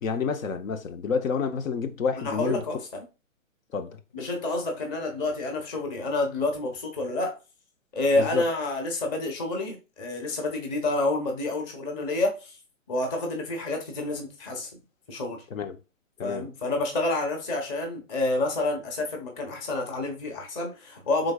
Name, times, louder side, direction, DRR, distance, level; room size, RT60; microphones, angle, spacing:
voice 1, 0.0-2.6 3.7-4.0 8.1-8.5 15.5-15.8 16.2-16.5, left 5 dB, 80° left, 0.9 m, -29 dB
voice 2, 2.2-3.0 4.1-7.4 7.9-12.6 12.9-14.7 15.1-15.4 16.2-21.3, left 2 dB, 20° left, 1.0 m, -29 dB
4.9 x 3.8 x 2.3 m
hypercardioid pair, 160°, 40 cm